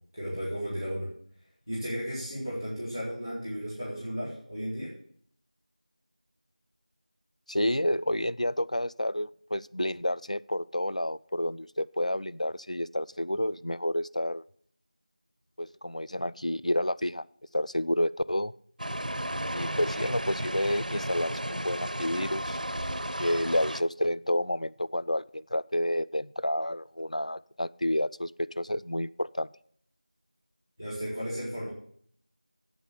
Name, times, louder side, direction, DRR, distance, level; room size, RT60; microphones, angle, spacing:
voice 1, 0.1-1.1 1.7-4.9 30.8-31.7, equal, 30° left, -8 dB, 2.3 m, -34 dB
voice 2, 7.5-14.4 15.6-17.3 17.5-18.5 19.5-22.6 23.2-29.5, left 1 dB, 55° left, 15 dB, 0.4 m, -30 dB
sound 1, 18.8-23.8, right 1 dB, 80° right, 0.6 m, -33 dB
8.3 x 8.1 x 8.3 m, 0.63 s
figure-of-eight pair, 180°, 4 cm